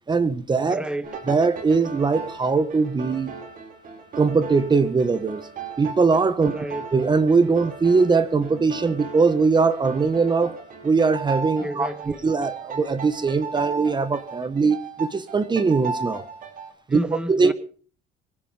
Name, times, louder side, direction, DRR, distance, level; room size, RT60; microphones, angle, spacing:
voice 1, 0.1-0.8 1.3-3.3 4.2-5.4 5.8-6.5 6.9-10.6 10.8-11.9 12.2-16.2 16.9-17.0 17.3-17.5, right 4 dB, 25° right, 1.6 m, -21 dB
voice 2, 0.7-1.1 6.4-6.8 11.6-12.2 16.9-17.5, right 1 dB, 5° right, 1.5 m, -31 dB
sound 1, 1.0-16.7, right 4 dB, 55° right, 5.4 m, -36 dB
25.0 x 9.5 x 5.2 m
cardioid pair, 110°, 17 cm